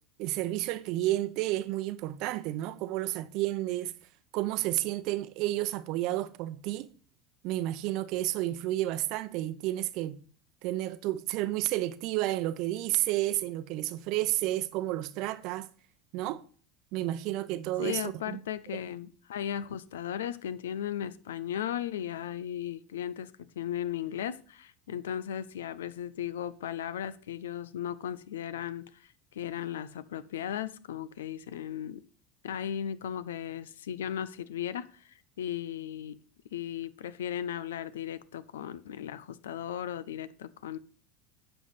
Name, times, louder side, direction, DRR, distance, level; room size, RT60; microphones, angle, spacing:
voice 1, 0.2-3.9 4.3-6.9 7.4-10.2 10.6-15.7 16.1-16.4 16.9-18.4, right 15 dB, 55° right, 0.7 m, -31 dB
voice 2, 17.8-32.0 32.4-36.2 36.5-40.8, left 10 dB, 75° left, 0.6 m, -36 dB
9.3 x 5.4 x 5.8 m
hypercardioid pair, 80°, 0 cm